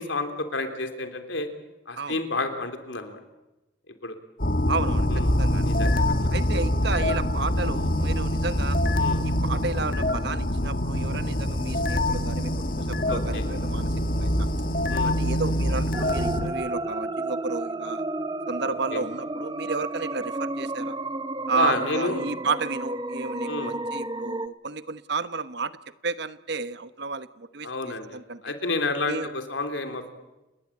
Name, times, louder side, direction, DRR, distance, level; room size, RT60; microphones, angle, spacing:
voice 1, 0.0-1.5 1.9-3.2 4.0-4.2 5.1-5.3 5.6-5.9 9.0-9.2 13.1-13.4 14.9-15.1 18.9-19.0 21.5-22.3 23.4-23.7 27.6-28.2 28.4-30.1, left 3 dB, 80° left, 7 dB, 3.5 m, -30 dB
sound 1, 4.4-16.5, left 1 dB, 50° left, 1.9 m, -25 dB
voice 2, 4.7-5.1 5.4-5.7 6.3-8.8 9.2-14.5 15.0-18.0 18.5-20.9 21.5-25.8 26.0-28.5 29.1-29.3, right 4 dB, 60° right, 13 dB, 1.1 m, -32 dB
sound 2, 15.9-24.5, right 2 dB, 25° right, 0.8 m, -32 dB
30.0 x 19.5 x 8.8 m, 1.0 s
head